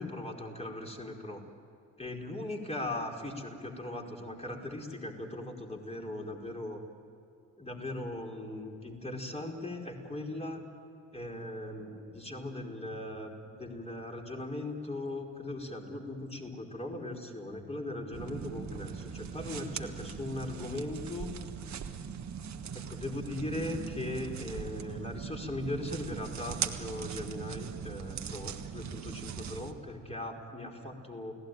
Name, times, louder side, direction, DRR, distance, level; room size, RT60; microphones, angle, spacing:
voice 1, 0.0-1.4 2.0-6.8 7.6-10.6 11.1-21.3 22.7-31.3, left 1 dB, 15° left, 1 dB, 4.8 m, -39 dB
sound 1, 18.1-29.7, right 7 dB, 45° right, 1.6 m, -40 dB
29.5 x 18.0 x 9.4 m, 2.4 s
figure-of-eight pair, 40°, 38 cm